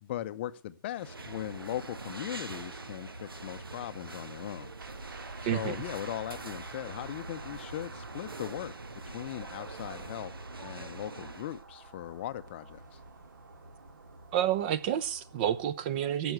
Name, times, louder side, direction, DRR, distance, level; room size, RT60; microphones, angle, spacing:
voice 1, 0.0-4.7 5.4-8.7 9.0-10.3 10.6-13.0, left 12 dB, 30° left, 0.7 m, -39 dB
sound 1, 0.9-11.6, right 2 dB, 80° right, 1.4 m, -44 dB
sound 2, 4.8-15.7, right 3 dB, 60° right, 2.2 m, -49 dB
voice 2, 5.4-5.8 14.3-16.3, right 10 dB, 25° right, 0.8 m, -29 dB
16.0 x 7.1 x 7.9 m
figure-of-eight pair, 140°, 12 cm